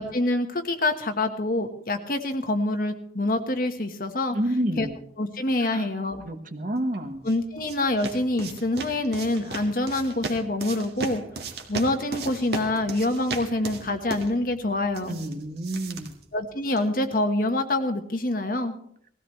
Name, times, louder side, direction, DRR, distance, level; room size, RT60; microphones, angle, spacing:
voice 1, 0.0-4.4 4.8-4.9 5.2-6.2 7.2-11.2 11.7-15.2 16.3-18.7, left 2 dB, 50° left, 6 dB, 1.4 m, -26 dB
voice 2, 4.3-4.9 5.7-5.9 6.3-7.2 15.0-16.1, right 1 dB, 45° right, 6 dB, 1.4 m, -29 dB
sound 1, 6.9-17.0, right 3 dB, 65° right, 1.9 m, -37 dB
20.0 x 15.5 x 3.2 m, 0.66 s
head